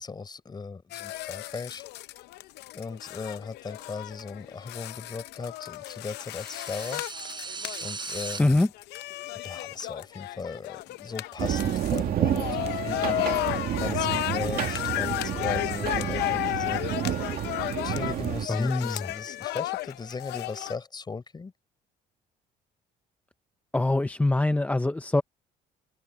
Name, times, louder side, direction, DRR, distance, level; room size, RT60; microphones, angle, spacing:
voice 1, 0.0-1.8 2.7-7.0 7.8-8.6 9.4-16.8 17.8-21.5, left 4 dB, 25° left, 4.1 m, -37 dB
sound 1, 0.9-20.7, left 17 dB, 80° left, 0.7 m, -33 dB
sound 2, 6.3-8.4, right 4 dB, 25° right, 5.1 m, -38 dB
sound 3, 11.4-18.5, right 11 dB, 60° right, 2.4 m, -30 dB
voice 2, 18.5-18.9 23.7-25.2, left 2 dB, 10° left, 0.7 m, -23 dB
cardioid pair, 110°, 17 cm